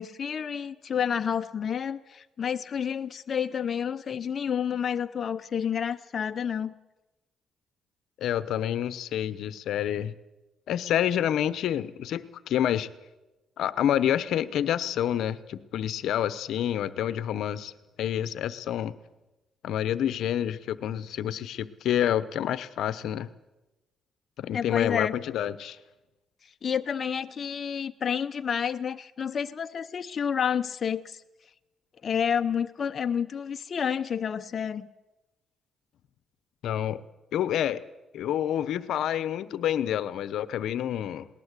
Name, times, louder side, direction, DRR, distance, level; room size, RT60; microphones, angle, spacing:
voice 1, 0.0-6.7 24.5-25.2 26.4-31.2 32.0-34.9, left 7 dB, 50° left, 0.7 m, -29 dB
voice 2, 8.2-10.1 10.7-12.9 13.6-17.7 18.0-18.9 19.6-23.3 24.4-25.8 36.6-37.0 37.3-37.9 38.1-41.3, left 10 dB, 75° left, 0.9 m, -28 dB
20.5 x 19.0 x 8.3 m
cardioid pair, 90°, 0 cm